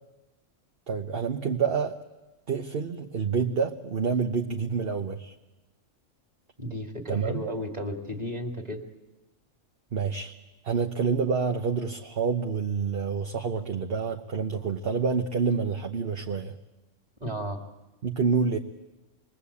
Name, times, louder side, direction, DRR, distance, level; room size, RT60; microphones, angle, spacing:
voice 1, 0.9-2.0 2.5-5.3 7.1-7.4 9.9-10.3 10.6-16.5 18.0-18.6, right 5 dB, 50° right, 4 dB, 1.2 m, -28 dB
voice 2, 6.6-8.8 17.2-17.6, equal, 30° right, 4 dB, 2.6 m, -33 dB
27.0 x 21.0 x 8.5 m, 1.1 s
omnidirectional pair, 1.3 m